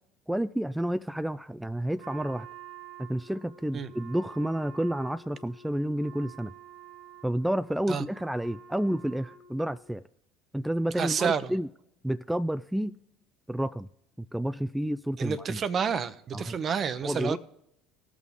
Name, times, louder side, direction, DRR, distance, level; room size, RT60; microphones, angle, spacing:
voice 1, 0.3-2.5 3.0-6.5 7.2-10.0 10.5-11.7 12.0-13.0 13.5-13.9 14.2-15.6 16.3-16.6 17.0-17.4, right 1 dB, 5° right, 0.3 m, -30 dB
Wind instrument woodwind instrument, 2.0-9.9, right 7 dB, 80° right, 1.5 m, -49 dB
voice 2, 11.0-11.5 15.2-17.4, right 6 dB, 40° right, 0.8 m, -29 dB
18.0 x 6.2 x 3.6 m
hypercardioid pair, 65°, 0 cm